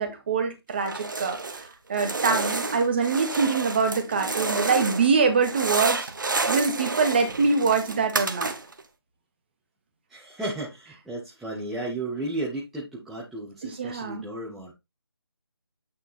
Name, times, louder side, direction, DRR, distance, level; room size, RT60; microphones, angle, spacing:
voice 1, 0.0-6.0 6.5-8.5 13.6-14.3, right 5 dB, 25° right, 1.4 m, -24 dB
sound 1, 0.8-1.7 1.9-5.1 5.4-8.8, right 3 dB, 50° right, 1.0 m, -30 dB
voice 2, 10.1-14.7, right 2 dB, ahead, 0.7 m, -34 dB
8.7 x 3.8 x 4.3 m
figure-of-eight pair, 155°, 13 cm